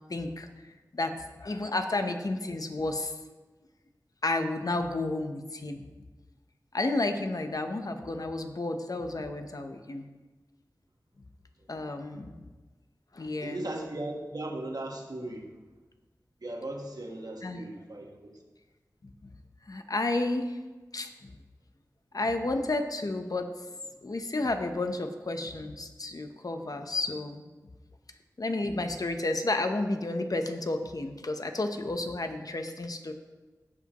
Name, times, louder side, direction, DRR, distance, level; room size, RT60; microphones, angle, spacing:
voice 1, 0.1-0.5 0.9-3.2 4.2-5.8 6.7-10.1 11.7-12.4 13.1-13.7 17.4-17.6 19.0-19.3 19.7-20.6 20.9-21.3 22.1-23.5 24.0-27.4 28.4-33.1, left 2 dB, 60° left, 6 dB, 0.8 m, -31 dB
voice 2, 13.4-15.5 16.4-18.4, right 1 dB, 65° right, 1 dB, 1.4 m, -37 dB
16.5 x 6.0 x 3.0 m, 1.3 s
wide cardioid pair, 45°, 7 cm